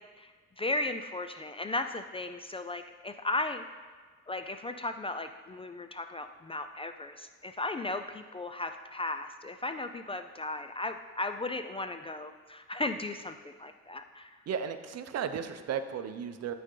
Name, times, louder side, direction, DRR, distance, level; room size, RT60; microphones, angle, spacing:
voice 1, 0.6-3.6 4.3-14.4, left 2 dB, 20° left, 8 dB, 0.3 m, -36 dB
voice 2, 14.5-16.5, right 7 dB, 55° right, 9 dB, 0.6 m, -35 dB
12.5 x 4.2 x 3.8 m, 1.5 s
cardioid pair, 90°, 30 cm